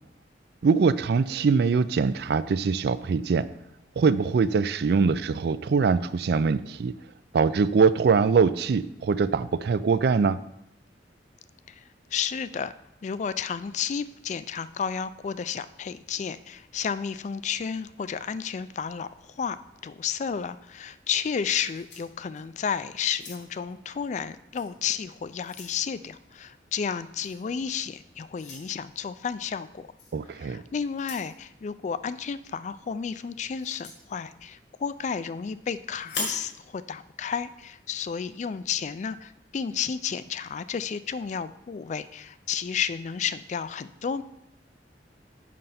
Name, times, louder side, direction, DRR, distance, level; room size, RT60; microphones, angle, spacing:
voice 1, 0.6-3.5 4.0-6.9 7.3-10.4 30.1-30.6, right 5 dB, 60° right, 0.4 m, -23 dB
voice 2, 12.1-12.7 13.0-19.6 19.8-29.9 30.3-44.2, left 7 dB, 40° left, 0.3 m, -32 dB
sound 1, 21.5-22.6 23.1-23.7 24.5-24.7 25.1-25.8 27.2-27.4 28.3-28.7 30.0-30.2 30.9-31.3 33.6-34.0 36.0-36.5, left 3 dB, 90° left, 2.1 m, -39 dB
7.6 x 5.3 x 5.8 m
head